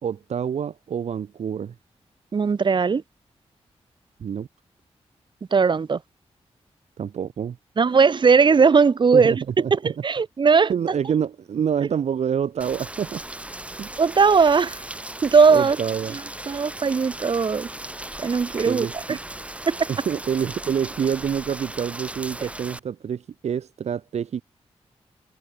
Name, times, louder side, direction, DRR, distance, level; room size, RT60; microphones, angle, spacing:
voice 1, 0.0-1.7 4.2-4.5 7.0-7.6 9.1-9.9 10.7-13.2 13.8-13.9 15.5-16.2 18.6-19.2 19.9-24.4, right 8 dB, 80° right, 2.7 m, -27 dB
voice 2, 2.3-3.0 5.5-6.0 7.8-9.3 9.7-10.7 14.0-14.8 15.2-15.8 16.1-16.2 16.5-17.7 18.2-19.2 19.7-19.9, right 5 dB, 45° right, 1.2 m, -18 dB
Rain, 12.6-22.8, right 1 dB, 10° right, 2.7 m, -37 dB
wide cardioid pair, 110°, 11 cm